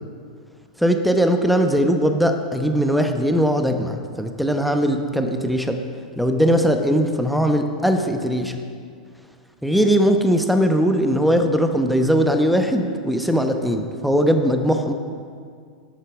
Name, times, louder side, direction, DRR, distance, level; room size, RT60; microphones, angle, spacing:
voice 1, 0.8-5.8 6.2-8.6 9.6-14.9, equal, ahead, 6 dB, 0.9 m, -20 dB
13.0 x 8.2 x 4.8 m, 2.2 s
hypercardioid pair, 105°, 4 cm